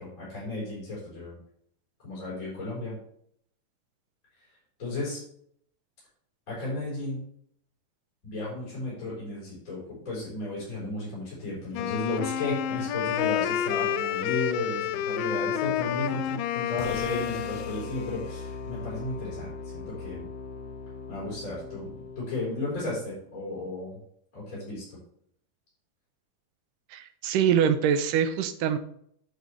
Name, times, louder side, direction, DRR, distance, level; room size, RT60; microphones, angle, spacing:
voice 1, 0.0-1.4 2.0-3.0 4.8-5.2 6.5-7.2 8.2-20.2 21.1-21.9 22.2-24.0 24.3-24.8, left 2 dB, 25° left, -8 dB, 4.4 m, -34 dB
Wind instrument woodwind instrument, 11.7-17.9, left 10 dB, 90° left, 2.3 m, -29 dB
sound 1, 16.8-22.9, left 4 dB, 70° left, 1.8 m, -40 dB
voice 2, 26.9-28.8, right 8 dB, 80° right, 10 dB, 2.2 m, -24 dB
9.7 x 7.9 x 3.4 m, 0.67 s
omnidirectional pair, 3.9 m